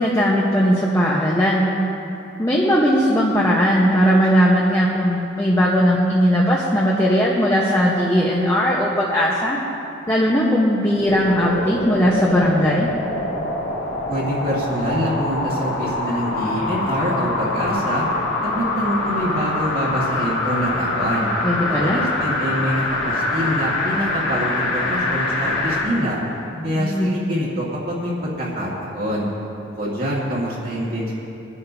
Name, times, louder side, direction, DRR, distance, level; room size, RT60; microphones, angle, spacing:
voice 1, 0.0-1.7 2.4-9.6 10.1-12.9 21.4-22.0 26.6-27.2, equal, 15° left, -4 dB, 1.1 m, -18 dB
sound 1, 10.9-25.9 26.4-26.5, left 2 dB, 80° left, 3.1 m, -25 dB
voice 2, 14.1-18.1 18.4-21.3 21.7-26.2 26.6-29.3 29.7-31.1, equal, 50° right, -6 dB, 2.0 m, -25 dB
22.0 x 11.0 x 2.8 m, 2.9 s
head